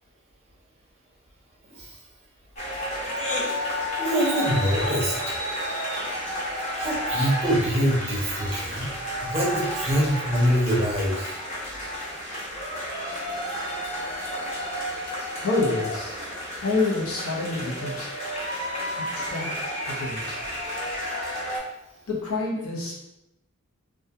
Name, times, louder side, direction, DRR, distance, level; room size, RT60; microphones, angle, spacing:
sound 1, 2.6-21.6, equal, 35° left, 0.8 m, -31 dB
voice 1, 4.0-5.2 6.8-8.9 9.2-11.3, equal, 30° right, -3 dB, 0.5 m, -24 dB
voice 2, 15.4-16.2 16.6-18.1 19.0-19.5 19.8-20.4 22.1-23.0, left 3 dB, 75° left, -4 dB, 0.7 m, -28 dB
2.3 x 2.2 x 2.8 m, 0.89 s
head